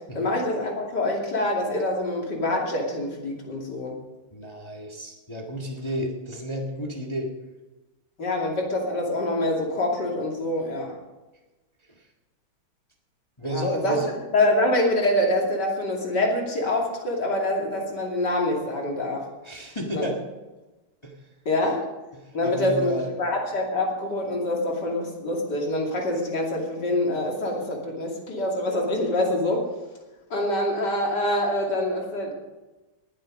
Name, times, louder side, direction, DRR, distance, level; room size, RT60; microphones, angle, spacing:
voice 1, 0.1-4.0 8.2-10.9 13.5-14.0 14.3-19.2 19.9-20.0 21.4-21.8 22.3-29.6 30.3-32.3, left 1 dB, 50° left, -1 dB, 3.2 m, -25 dB
voice 2, 4.3-7.3 13.4-14.1 19.4-20.2 21.0-21.2 22.1-23.1, equal, 15° left, 0 dB, 1.4 m, -31 dB
19.5 x 7.9 x 5.3 m, 1.1 s
omnidirectional pair, 2.3 m